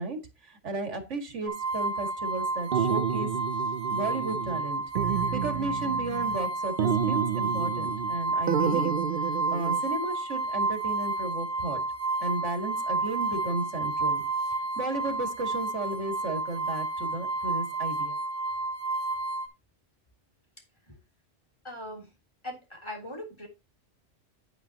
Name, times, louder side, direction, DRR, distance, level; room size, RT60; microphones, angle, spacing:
voice 1, 0.0-3.3 3.9-4.8 5.1-9.0 9.5-11.8 12.2-14.2 14.8-18.2, right 2 dB, 80° right, 2.2 m, -34 dB
sound 1, 1.5-19.5, right 3 dB, 15° right, 3.2 m, -31 dB
sound 2, 2.7-4.7 5.0-6.4 6.8-8.2 8.5-9.8, right 8 dB, 55° right, 0.7 m, -30 dB
voice 2, 21.6-22.1 22.4-23.5, left 1 dB, 25° left, 3.4 m, -40 dB
10.0 x 9.2 x 2.9 m
omnidirectional pair, 1.2 m